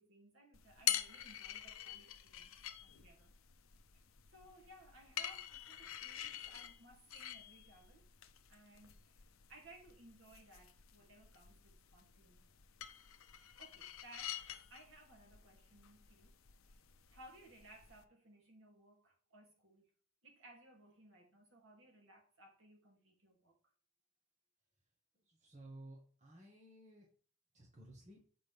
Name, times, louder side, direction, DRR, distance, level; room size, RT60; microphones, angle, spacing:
voice 1, 0.0-3.3 4.3-8.0 8.5-9.1 9.5-12.5 13.6-16.3 16.7-16.8 17.1-19.9 20.2-23.5, right 1 dB, 70° right, 2.6 m, -61 dB
sound 1, 0.5-18.0, left 11 dB, 80° left, 0.7 m, -47 dB
voice 2, 25.1-27.1 27.5-28.3, right 1 dB, 35° right, 1.7 m, -56 dB
7.6 x 5.1 x 3.5 m
head